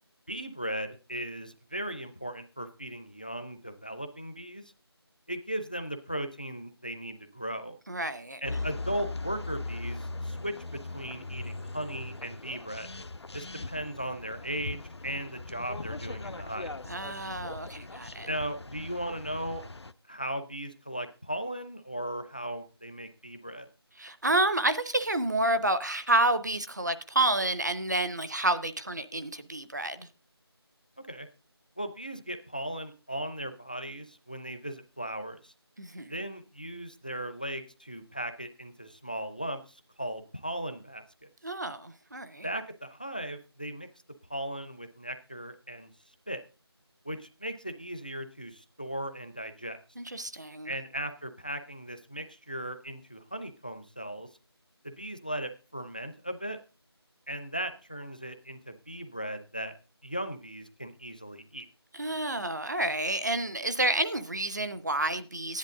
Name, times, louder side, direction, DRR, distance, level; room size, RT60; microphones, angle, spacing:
voice 1, 0.3-4.6 5.3-7.8 8.4-12.9 13.3-16.8 18.3-19.6 20.1-23.7 31.1-31.3 31.8-35.5 36.1-41.3 42.4-43.9 44.3-45.9 46.3-46.4 47.0-49.8 50.6-54.3 54.8-56.6 57.3-59.7 60.0-61.7, right 1 dB, 20° left, 0.5 m, -37 dB
voice 2, 7.9-8.4 16.9-18.3 24.0-30.1 35.8-36.1 41.4-42.5 50.0-50.7 61.9-65.6, right 2 dB, 45° right, 0.7 m, -29 dB
sound 1, 8.5-19.9, left 3 dB, 80° left, 0.7 m, -39 dB
12.0 x 10.5 x 3.7 m
figure-of-eight pair, 180°, 14 cm